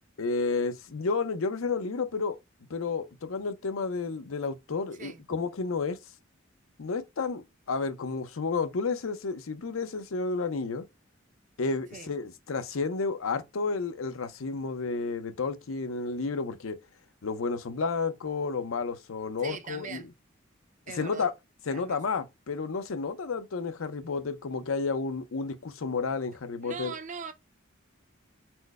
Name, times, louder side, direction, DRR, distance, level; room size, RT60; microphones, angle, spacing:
voice 1, 0.2-2.4 2.7-6.0 6.8-10.8 11.6-16.8 17.2-20.0 21.0-21.3 21.7-26.9, left 4 dB, 80° left, 0.6 m, -31 dB
voice 2, 19.4-20.1 20.9-21.3 21.7-22.0 26.6-27.3, right 5 dB, 40° right, 0.5 m, -40 dB
4.4 x 2.1 x 4.5 m
head